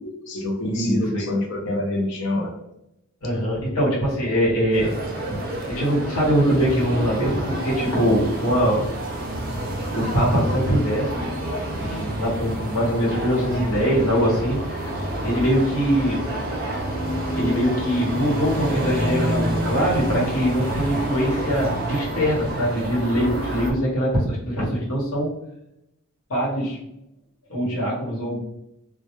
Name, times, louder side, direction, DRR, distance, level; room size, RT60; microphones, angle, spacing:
voice 1, 0.0-2.6, left 1 dB, 55° left, 2 dB, 0.5 m, -26 dB
voice 2, 0.7-1.3 3.2-4.9 5.7-8.9 9.9-11.3 11.8-16.2 17.3-25.3 26.3-26.8 27.5-28.4, equal, 85° left, -4 dB, 0.9 m, -22 dB
sound 1, 4.7-23.7, right 1 dB, 45° right, 0.5 m, -28 dB
2.1 x 2.0 x 2.8 m, 0.84 s
head